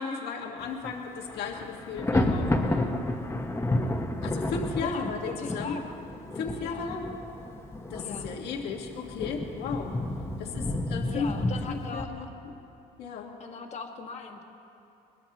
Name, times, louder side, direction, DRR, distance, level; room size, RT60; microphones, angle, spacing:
voice 1, 0.0-3.0 3.7-5.8 6.3-7.1 7.9-10.0 10.4-11.3 11.7-12.5 13.0-13.3, left 5 dB, 80° left, 0 dB, 1.8 m, -35 dB
Thunder, 0.6-0.9 1.2-12.0, left 1 dB, 15° left, 1.3 m, -31 dB
voice 2, 4.8-5.9 6.6-6.9 8.0-8.3 11.0-12.1 13.4-14.4, left 5 dB, 40° left, 3 dB, 1.7 m, -39 dB
22.0 x 20.5 x 3.0 m, 2.7 s
cardioid pair, 110°, 17 cm